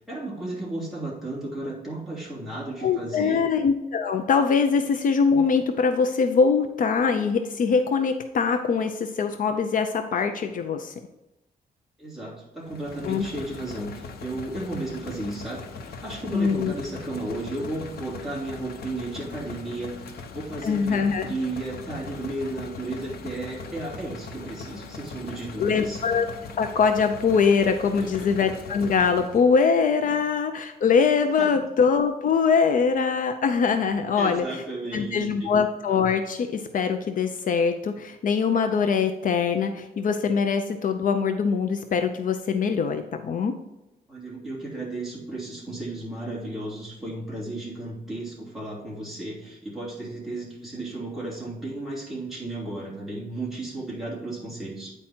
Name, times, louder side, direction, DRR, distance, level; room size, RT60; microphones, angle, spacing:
voice 1, 0.1-3.4 12.0-26.0 27.9-28.3 30.0-30.2 31.4-31.5 34.2-35.5 44.1-54.9, right 2 dB, ahead, -6 dB, 2.9 m, -34 dB
voice 2, 2.8-10.9 13.1-13.3 16.3-16.7 20.6-21.3 25.6-26.3 26.6-34.6 34.9-43.5, left 5 dB, 60° left, 7 dB, 0.6 m, -23 dB
sound 1, 12.7-29.6, left 4 dB, 85° left, 1.0 m, -40 dB
8.9 x 4.7 x 4.3 m, 0.98 s
wide cardioid pair, 160°, 16 cm